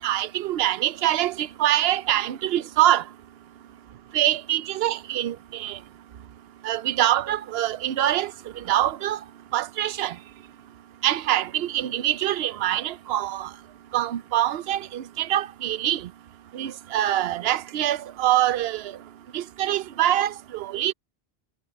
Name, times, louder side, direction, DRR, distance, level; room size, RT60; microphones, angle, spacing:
voice 1, 0.0-3.0 4.1-5.8 6.6-8.3 8.7-9.2 9.5-10.1 11.0-13.5 13.9-16.0 16.5-18.8 19.3-20.9, right 13 dB, 70° right, 0.8 m, -24 dB
omnidirectional pair, 1.1 m